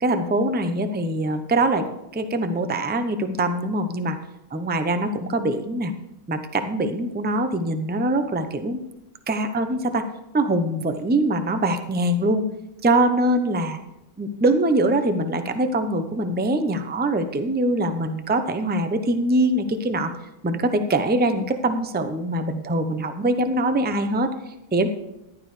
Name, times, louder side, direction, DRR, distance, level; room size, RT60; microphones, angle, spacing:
voice 1, 0.0-1.9 2.1-4.2 4.5-5.9 6.3-8.8 9.3-10.1 10.3-12.4 12.8-13.8 14.2-20.1 20.4-24.3 24.7-24.9, right 1 dB, 15° right, 8 dB, 0.4 m, -23 dB
14.5 x 11.5 x 3.3 m, 0.88 s
omnidirectional pair, 1.6 m